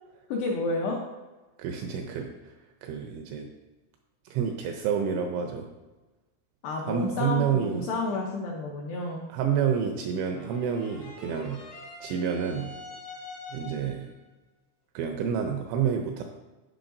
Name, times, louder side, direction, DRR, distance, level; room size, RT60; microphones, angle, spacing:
voice 1, 0.3-1.0 6.6-9.2, left 2 dB, 80° left, -2 dB, 2.4 m, -30 dB
voice 2, 1.6-2.5 2.8-3.5 4.3-5.7 6.9-7.9 9.3-11.7 12.0-12.8 13.5-14.1 14.9-16.2, right 7 dB, 80° right, 4 dB, 2.7 m, -29 dB
sound 1, 10.2-14.1, left 3 dB, 60° left, 1.2 m, -45 dB
16.0 x 5.6 x 2.6 m, 1.2 s
omnidirectional pair, 5.9 m